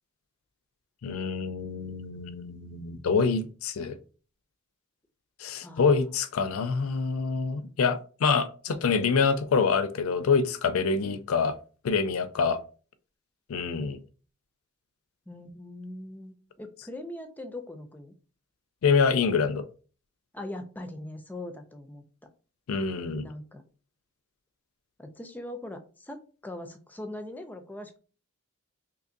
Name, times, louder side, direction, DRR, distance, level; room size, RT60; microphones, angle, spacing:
voice 1, 1.0-4.0 5.4-11.6 11.8-12.6 13.5-14.0 18.8-19.6 22.7-23.3, left 5 dB, 80° left, 0.4 m, -26 dB
voice 2, 5.6-6.0 15.3-18.1 20.3-22.0 23.2-23.6 25.0-28.0, left 1 dB, 10° left, 0.4 m, -41 dB
3.8 x 2.8 x 2.5 m
head